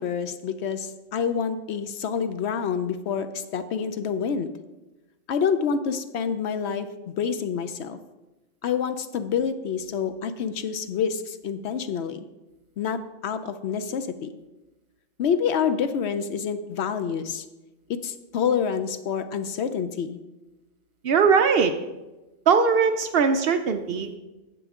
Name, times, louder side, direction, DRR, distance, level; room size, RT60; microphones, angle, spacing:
voice 1, 0.0-4.6 5.3-8.0 8.6-12.3 12.8-14.3 15.2-17.4 17.9-20.2, left 7 dB, 65° left, 10 dB, 0.8 m, -27 dB
voice 2, 21.0-21.7 22.5-24.2, right 5 dB, 60° right, 8 dB, 0.7 m, -20 dB
9.9 x 7.8 x 3.6 m, 1.1 s
omnidirectional pair, 1.3 m